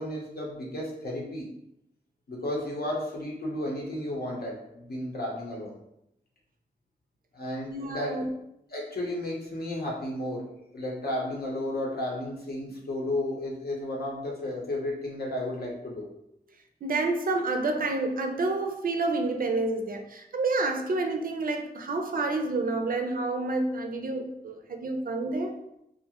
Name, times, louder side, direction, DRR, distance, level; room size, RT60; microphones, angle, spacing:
voice 1, 0.0-1.5 2.3-5.8 7.3-8.2 8.7-10.5 10.7-16.1, left 1 dB, 70° left, -2 dB, 0.8 m, -33 dB
voice 2, 7.7-8.3 16.8-25.6, right 2 dB, 60° right, 4 dB, 0.4 m, -29 dB
2.5 x 2.1 x 2.8 m, 0.80 s
cardioid pair, 50°, 16 cm